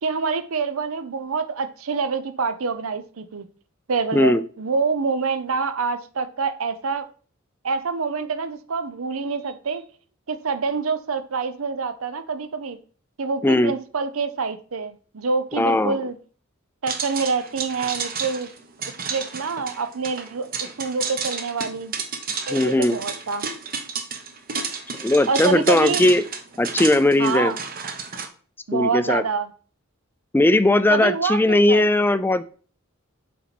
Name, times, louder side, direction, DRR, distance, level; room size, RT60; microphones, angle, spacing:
voice 1, 0.0-3.5 3.9-7.0 7.6-9.8 10.3-12.8 13.2-16.2 16.8-18.5 19.0-20.5 20.8-22.0 22.5-23.5 25.3-26.0 27.2-27.6 28.7-29.5 30.9-31.8, right 4 dB, 85° right, 0.7 m, -26 dB
voice 2, 4.1-4.4 13.4-13.7 15.6-16.0 22.5-23.0 25.0-26.3 26.6-27.5 28.7-29.2 30.3-32.4, left 1 dB, 10° left, 0.4 m, -18 dB
sound 1, 16.9-28.3, right 5 dB, 45° right, 0.9 m, -31 dB
7.3 x 4.3 x 4.2 m
head